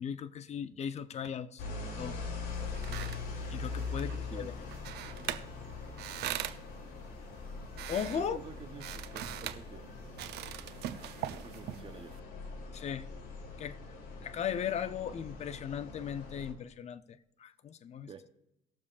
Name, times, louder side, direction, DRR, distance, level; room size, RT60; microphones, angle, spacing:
voice 1, 0.0-1.6 2.0-2.2 3.5-4.5 7.9-8.4 12.7-13.1 13.6-13.8 14.2-18.1, left 8 dB, 40° left, 0.6 m, -37 dB
sound 1, 1.6-16.5, left 4 dB, 65° left, 3.0 m, -42 dB
sound 2, 2.5-12.2, right 12 dB, 80° right, 0.6 m, -43 dB
voice 2, 3.9-4.5 8.1-9.9 11.2-12.2 18.1-18.2, right 5 dB, 30° right, 0.9 m, -48 dB
19.5 x 7.0 x 2.5 m
cardioid pair, 110°, 17 cm